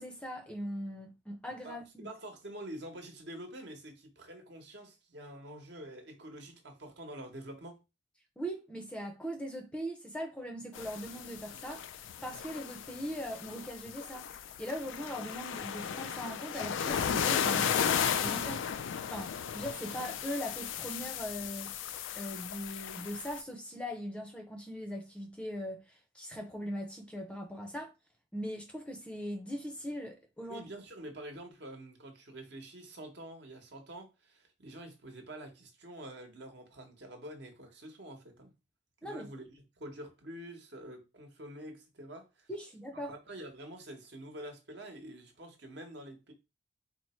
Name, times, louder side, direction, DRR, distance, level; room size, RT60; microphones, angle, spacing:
voice 1, 0.0-2.1 8.4-14.3 14.6-18.7 19.1-21.7 22.1-27.9 28.3-30.7 39.0-39.3 42.5-43.1, equal, 5° left, 0.5 m, -40 dB
voice 2, 1.6-7.8 30.5-38.5 39.0-39.5 39.8-42.5 43.1-46.3, right 1 dB, 60° right, 1.0 m, -47 dB
sound 1, 10.7-23.4, left 8 dB, 80° left, 0.3 m, -35 dB
4.3 x 2.1 x 4.2 m
head